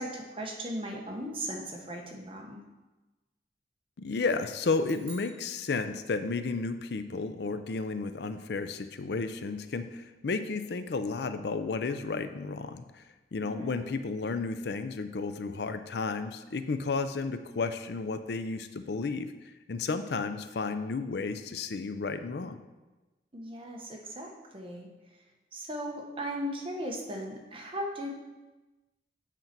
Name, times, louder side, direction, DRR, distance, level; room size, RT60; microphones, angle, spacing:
voice 1, 0.0-2.6 13.4-14.0 23.3-24.9 25.5-28.1, equal, 30° right, 1 dB, 1.1 m, -37 dB
voice 2, 4.0-13.0 13.3-19.3 19.7-22.6, left 4 dB, 65° left, 10 dB, 0.5 m, -32 dB
sound 1, 4.8-6.5, right 4 dB, 55° right, 2.2 m, -53 dB
7.9 x 4.4 x 5.9 m, 1.1 s
head